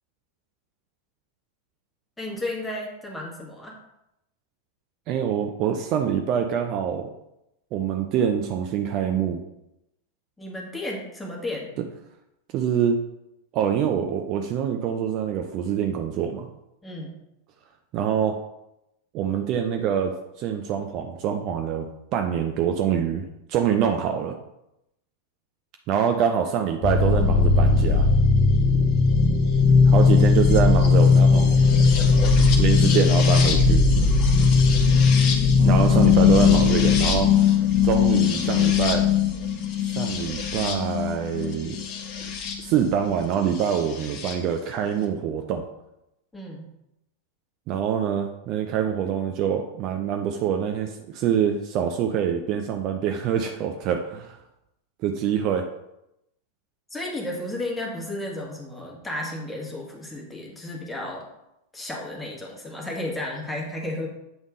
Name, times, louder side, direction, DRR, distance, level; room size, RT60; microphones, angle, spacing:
voice 1, 2.2-3.8 10.4-11.7 16.8-17.2 35.6-36.0 46.3-46.7 56.9-61.3 61.7-64.1, left 1 dB, 10° left, -2 dB, 1.6 m, -33 dB
voice 2, 5.1-7.1 7.7-9.4 12.5-13.0 13.5-16.5 17.9-18.3 19.1-24.3 25.9-28.1 29.9-31.6 32.6-33.8 35.6-37.3 37.8-39.0 40.0-41.8 42.6-45.6 47.7-54.4 55.0-55.7, right 8 dB, 40° right, 4 dB, 0.5 m, -25 dB
sound 1, 26.8-42.6 43.7-44.3, left 5 dB, 40° left, 0.9 m, -18 dB
8.0 x 3.5 x 3.7 m, 0.86 s
figure-of-eight pair, 90°, 0 cm